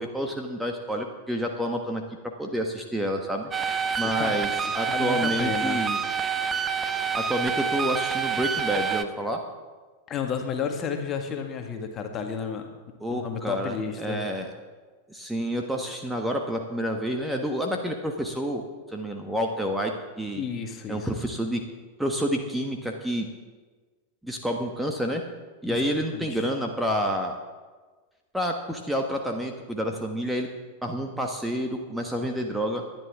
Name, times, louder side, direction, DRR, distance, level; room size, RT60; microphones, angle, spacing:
voice 1, 0.0-2.0 2.4-3.5 4.0-6.0 7.1-9.4 13.0-14.5 15.1-20.4 20.9-21.6 22.0-23.3 24.2-25.2 25.6-27.3 28.3-30.5 30.8-32.8, equal, 5° right, 2 dB, 1.4 m, -29 dB
sound 1, 3.5-9.0, right 6 dB, 20° right, 0.8 m, -27 dB
voice 2, 4.0-4.4 4.9-5.8 10.1-12.7 13.1-14.2 20.4-21.1 25.7-26.5, left 6 dB, 30° left, 4 dB, 1.8 m, -32 dB
20.5 x 11.0 x 3.7 m, 1.4 s
figure-of-eight pair, 90°, 0 cm